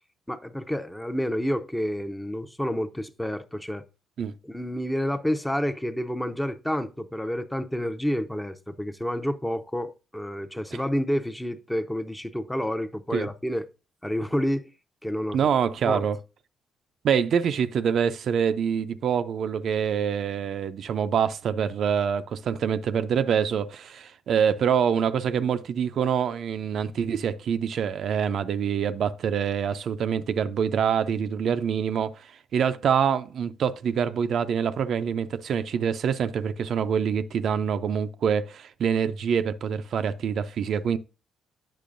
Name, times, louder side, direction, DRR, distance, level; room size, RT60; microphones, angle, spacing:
voice 1, 0.3-3.8 4.4-13.6 14.0-14.7 15.0-15.5 15.9-16.1, equal, 5° left, 0.6 m, -29 dB
voice 2, 15.3-16.2 17.0-32.3 32.5-41.0, right 7 dB, 65° right, 0.4 m, -25 dB
8.4 x 6.0 x 2.5 m
cardioid pair, 90°, 0 cm